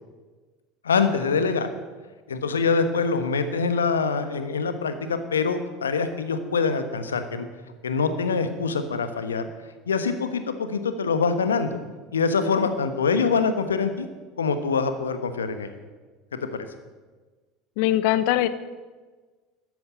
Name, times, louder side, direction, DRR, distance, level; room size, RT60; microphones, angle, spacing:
voice 1, 0.8-1.7 2.3-7.5 7.8-9.4 9.9-11.7 12.1-14.1 14.4-15.8, left 5 dB, 80° left, 9 dB, 1.3 m, -24 dB
voice 2, 17.8-18.5, left 14 dB, 60° left, 14 dB, 1.0 m, -21 dB
14.0 x 9.9 x 8.9 m, 1.3 s
figure-of-eight pair, 70°, 0 cm